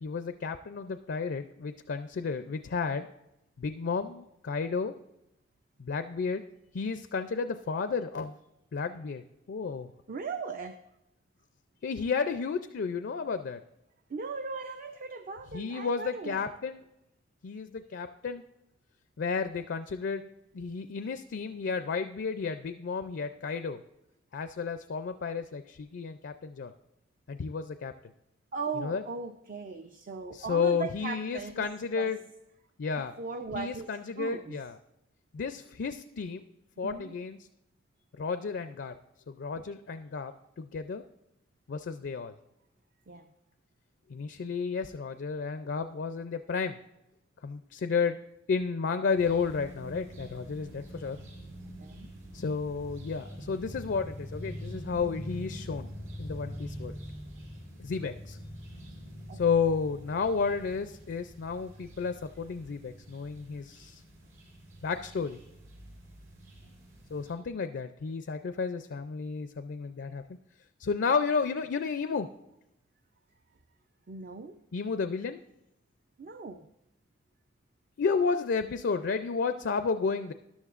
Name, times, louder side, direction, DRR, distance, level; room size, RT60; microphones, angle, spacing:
voice 1, 0.0-3.1 3.6-4.9 5.8-6.4 6.7-8.4 8.7-9.9 11.8-13.6 15.5-16.8 17.4-18.4 19.2-20.3 20.5-23.8 24.3-26.7 27.3-27.9 28.8-29.0 30.3-32.2 32.8-33.1 33.5-34.8 35.3-36.4 36.8-37.4 38.2-39.0 39.3-41.0 41.7-42.4 44.1-46.8 47.4-48.2 48.5-51.2 52.3-55.9 56.2-56.9 57.8-58.4 59.3-64.0 64.8-65.4 67.1-70.2 70.8-72.3 74.7-75.4 78.0-80.3, left 5 dB, 65° left, 10 dB, 0.4 m, -32 dB
voice 2, 10.1-10.8 14.1-16.5 28.5-32.1 33.2-33.9 34.2-34.6 36.8-37.1 43.1-43.2 51.8-52.1 59.3-59.4 74.1-74.5 76.2-76.7, right 4 dB, 50° right, 7 dB, 0.5 m, -38 dB
sound 1, 49.2-67.3, equal, 80° right, 4.1 m, -45 dB
13.5 x 11.0 x 2.5 m, 0.87 s
head